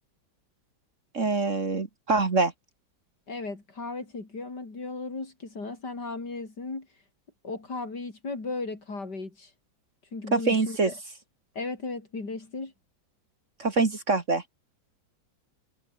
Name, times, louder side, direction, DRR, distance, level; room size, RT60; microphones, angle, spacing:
voice 1, 1.1-2.5 10.3-10.9 13.6-14.4, right 3 dB, 40° right, 2.2 m, -24 dB
voice 2, 3.3-6.9 7.4-9.5 10.1-10.9 11.5-12.7, left 3 dB, 60° left, 4.9 m, -36 dB
omnidirectional pair, 2.0 m